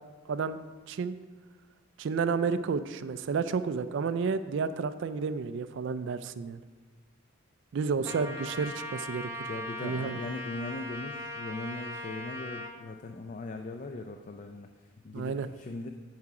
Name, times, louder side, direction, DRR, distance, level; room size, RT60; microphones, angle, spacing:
voice 1, 2.0-6.6 7.7-9.3 9.8-10.2 15.1-15.5, right 5 dB, 55° right, 13 dB, 0.3 m, -31 dB
Trumpet, 8.0-12.7, left 1 dB, 15° right, 0.7 m, -39 dB
voice 2, 9.5-15.9, left 2 dB, 35° left, 5 dB, 0.4 m, -40 dB
9.7 x 4.7 x 4.8 m, 1.4 s
head